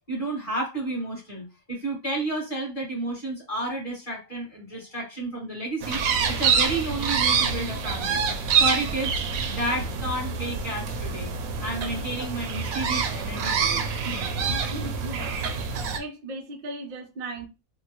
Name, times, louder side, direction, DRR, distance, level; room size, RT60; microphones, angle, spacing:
voice 1, 0.1-6.0 6.3-8.2 8.5-9.1 9.5-11.3 11.6-14.2, right 1 dB, 25° left, 1.7 m, -31 dB
sound 1, 5.8-16.0, right 6 dB, 85° right, 1.0 m, -26 dB
voice 2, 14.5-15.5 16.0-17.5, right 1 dB, 60° right, 0.5 m, -37 dB
3.6 x 2.2 x 2.9 m
omnidirectional pair, 1.4 m